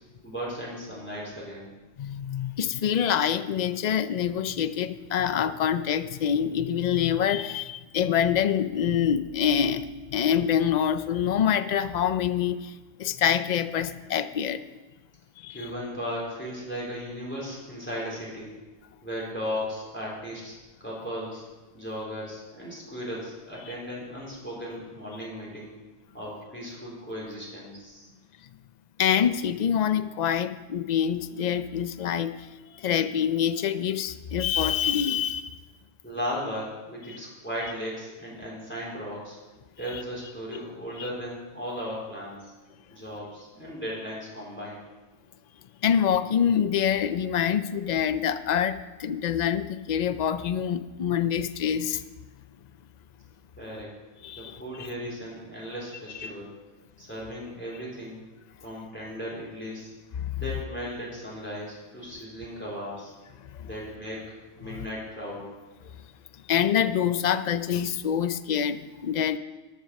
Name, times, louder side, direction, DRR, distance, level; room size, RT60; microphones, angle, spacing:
voice 1, 0.2-1.7 15.5-18.5 19.0-20.5 20.8-21.4 21.7-25.7 26.1-28.1 36.0-39.4 39.8-42.5 42.9-44.8 53.6-53.9 54.4-56.5 57.0-58.2 58.6-59.9 60.4-63.1 63.6-64.3 64.6-65.5, equal, 10° left, -5 dB, 3.7 m, -36 dB
voice 2, 2.0-14.6 15.4-15.6 29.0-32.5 32.7-35.5 39.9-40.0 40.5-40.6 41.0-41.1 45.8-52.0 54.2-54.6 56.2-56.3 60.2-60.4 63.5-63.7 64.7-64.8 66.5-69.4, left 8 dB, 65° left, 12 dB, 0.4 m, -26 dB
13.0 x 7.0 x 6.4 m, 1.2 s
omnidirectional pair, 1.3 m